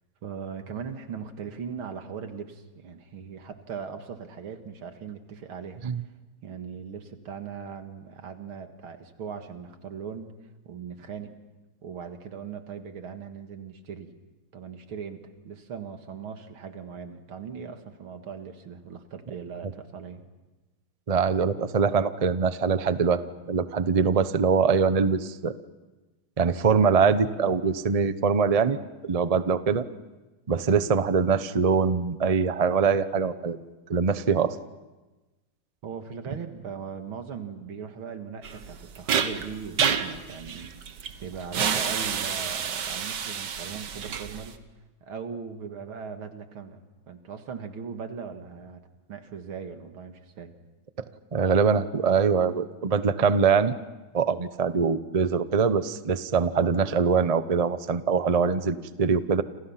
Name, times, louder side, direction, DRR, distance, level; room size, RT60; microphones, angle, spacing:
voice 1, 0.2-5.8 6.4-10.4 10.7-11.3 11.8-14.1 14.5-20.2 35.8-40.7 41.0-44.6 45.0-46.8 47.1-48.8 49.1-50.5, right 6 dB, 85° right, 7 dB, 2.7 m, -39 dB
voice 2, 21.1-23.2 23.5-25.5 26.4-28.8 29.0-29.8 30.5-33.6 33.9-34.5 51.3-53.7 54.1-59.4, right 5 dB, 45° right, 12 dB, 0.5 m, -23 dB
sound 1, 38.4-44.6, right 7 dB, 60° right, 1.8 m, -29 dB
29.5 x 27.5 x 5.9 m, 1.1 s
omnidirectional pair, 2.2 m